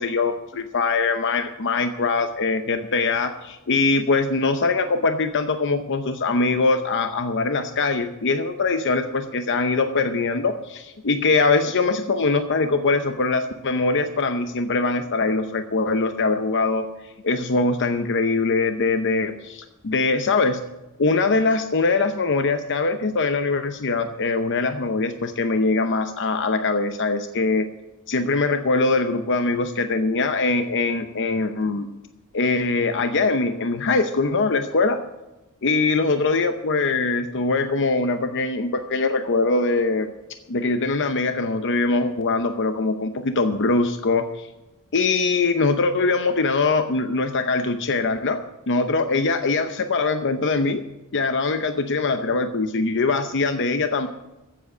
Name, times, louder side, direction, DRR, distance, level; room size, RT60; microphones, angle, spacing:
voice 1, 0.0-16.9 17.2-20.6 21.0-27.7 28.1-31.9 32.3-35.0 35.6-40.1 40.5-44.5 44.9-48.4 48.7-50.8 51.1-54.1, left 3 dB, 55° left, 8 dB, 0.8 m, -22 dB
14.5 x 7.8 x 6.2 m, 0.99 s
head